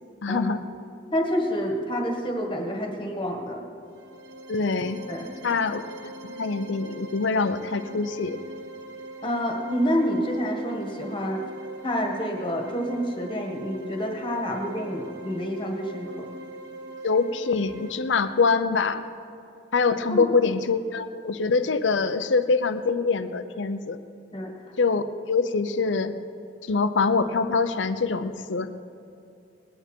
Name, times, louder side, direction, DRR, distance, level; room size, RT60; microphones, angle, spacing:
voice 1, 0.2-0.6 4.5-5.0 5.4-8.4 17.0-19.0 19.7-24.0 24.8-25.0 25.3-26.1 26.7-28.7, left 4 dB, 75° left, 11 dB, 0.6 m, -24 dB
voice 2, 1.1-3.6 5.1-5.6 9.2-11.4 11.8-16.3 20.1-20.3 24.3-24.5, equal, 25° left, 1 dB, 1.6 m, -28 dB
sound 1, 3.8-17.9, right 1 dB, 70° right, 1.2 m, -42 dB
20.0 x 9.3 x 4.5 m, 2.7 s
head